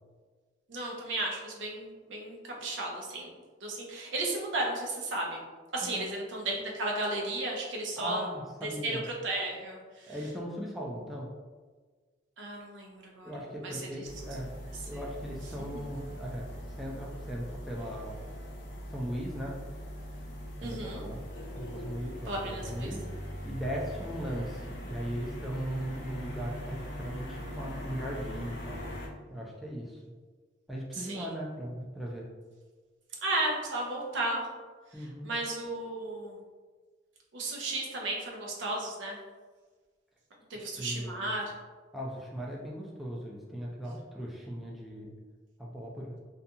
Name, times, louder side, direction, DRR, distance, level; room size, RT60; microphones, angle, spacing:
voice 1, 0.7-3.3 3.6-5.4 5.7-8.3 8.6-10.2 12.4-14.1 14.9-15.0 15.4-15.8 20.6-21.0 22.3-22.9 30.9-31.3 33.2-34.5 34.9-36.4 37.3-39.2 40.5-41.5, right 2 dB, 80° right, -1 dB, 0.6 m, -34 dB
voice 2, 8.0-9.0 10.1-11.3 13.2-14.5 14.8-18.1 18.9-19.6 20.6-21.2 21.5-23.0 23.4-28.8 29.3-30.0 30.7-32.3 34.9-35.3 40.5-41.3 41.9-45.1 45.6-46.2, equal, ahead, -4 dB, 0.3 m, -38 dB
sound 1, 14.0-29.1, equal, 65° left, 0.5 m, -41 dB
2.6 x 2.3 x 2.6 m, 1.4 s
head